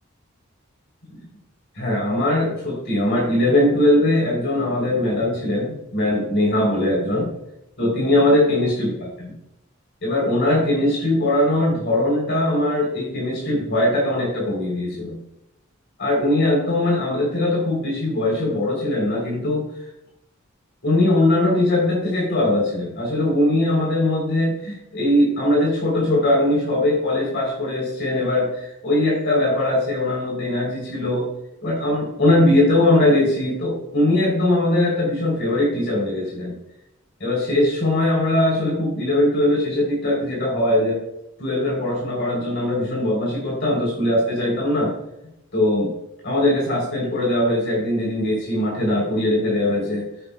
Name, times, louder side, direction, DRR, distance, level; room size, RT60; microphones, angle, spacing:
voice 1, 1.8-7.3 7.8-9.3 10.0-15.2 16.0-19.7 20.8-31.3 31.6-36.5 37.2-41.0 41.4-44.9 45.5-45.9 46.2-50.1, left 1 dB, 60° left, -3 dB, 3.4 m, -20 dB
14.0 x 7.5 x 2.2 m, 0.86 s
head